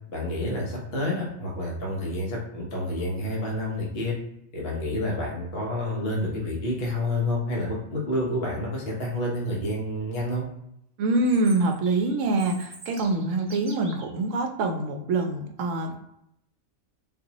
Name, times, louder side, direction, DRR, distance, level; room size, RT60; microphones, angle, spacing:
voice 1, 0.1-4.1 4.5-10.4, left 1 dB, 50° left, -3 dB, 1.2 m, -29 dB
voice 2, 11.0-16.0, right 2 dB, 70° right, 3 dB, 0.9 m, -25 dB
Chirp tweet, 11.1-14.1, right 2 dB, 30° right, 0.8 m, -46 dB
4.0 x 2.6 x 2.9 m, 0.75 s
omnidirectional pair, 1.4 m